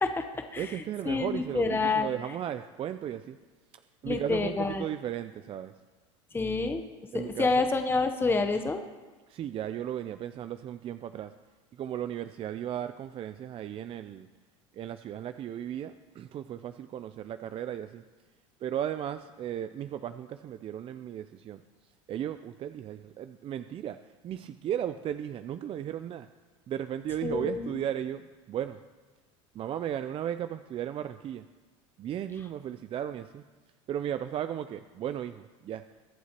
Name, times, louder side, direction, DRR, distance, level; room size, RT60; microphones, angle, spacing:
voice 1, 0.0-0.7 1.1-2.1 4.0-4.8 6.3-6.8 7.1-8.8 27.2-27.7, left 3 dB, 15° left, 6 dB, 0.8 m, -28 dB
voice 2, 0.6-3.4 4.0-5.7 7.1-7.7 9.3-11.3 11.8-14.3 14.7-18.0 18.6-21.6 22.1-24.0 24.2-26.3 26.7-28.8 29.5-31.4 32.0-33.4 33.9-35.8, right 10 dB, 35° right, 10 dB, 0.4 m, -35 dB
22.5 x 8.3 x 3.0 m, 1.3 s
hypercardioid pair, 95°, 16 cm